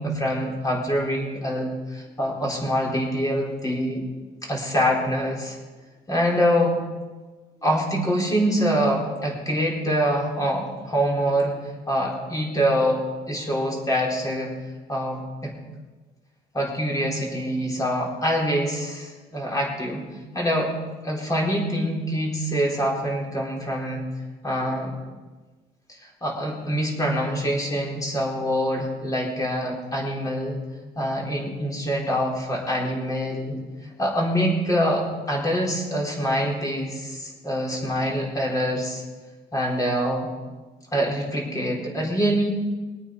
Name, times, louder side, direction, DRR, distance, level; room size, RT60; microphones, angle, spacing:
voice 1, 0.0-4.0 4.4-5.6 6.1-6.8 7.6-11.5 11.9-14.5 14.9-15.5 16.5-20.0 20.3-20.7 21.0-24.1 24.4-25.0 25.9-30.6 31.0-39.0 39.5-40.3 40.9-42.5, equal, 20° left, -2 dB, 4.3 m, -25 dB
22.0 x 9.0 x 5.2 m, 1.3 s
cardioid pair, 110°, 17 cm